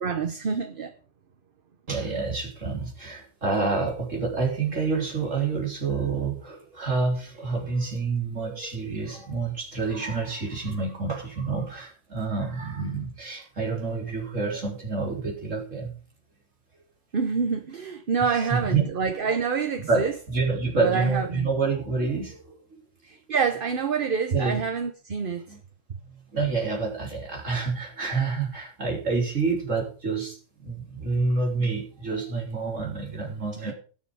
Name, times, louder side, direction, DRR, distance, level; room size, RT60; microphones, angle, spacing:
voice 1, 0.0-0.9 17.1-20.1 20.8-21.5 23.0-25.6 33.6-33.7, right 5 dB, 50° right, 1.0 m, -27 dB
voice 2, 1.9-15.9 18.2-18.9 19.8-22.8 24.3-24.6 25.5-25.6 26.3-33.7, right 4 dB, 80° right, 4.1 m, -28 dB
18.0 x 7.1 x 4.9 m
omnidirectional pair, 1.3 m